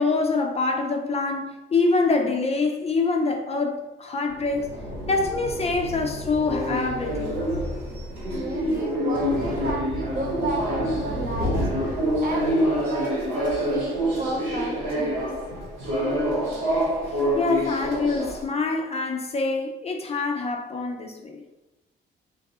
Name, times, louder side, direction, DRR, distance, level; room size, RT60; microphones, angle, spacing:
voice 1, 0.0-4.7 5.1-7.4 17.1-21.4, left 3 dB, 30° left, 3 dB, 0.4 m, -25 dB
sound 1, 4.3-18.4, equal, 75° right, 1.3 m, -27 dB
voice 2, 8.3-11.6 12.2-15.3, right 1 dB, 45° right, 0 dB, 1.0 m, -32 dB
3.8 x 2.3 x 2.7 m, 1.0 s
cardioid pair, 90°, 20 cm